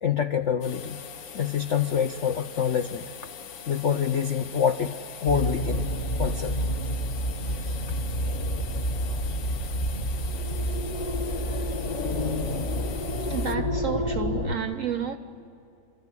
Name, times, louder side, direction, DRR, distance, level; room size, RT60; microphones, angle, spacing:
voice 1, 0.0-1.0 1.3-3.1 3.7-5.9 6.2-6.6 7.4-7.8, left 8 dB, 85° left, 0.6 m, -26 dB
sound 1, 0.6-13.6, left 7 dB, 65° left, 1.7 m, -42 dB
sound 2, 5.3-14.5, equal, 30° left, 0.9 m, -29 dB
voice 2, 13.3-15.2, right 8 dB, 70° right, 0.7 m, -31 dB
28.5 x 14.0 x 9.8 m
omnidirectional pair, 2.2 m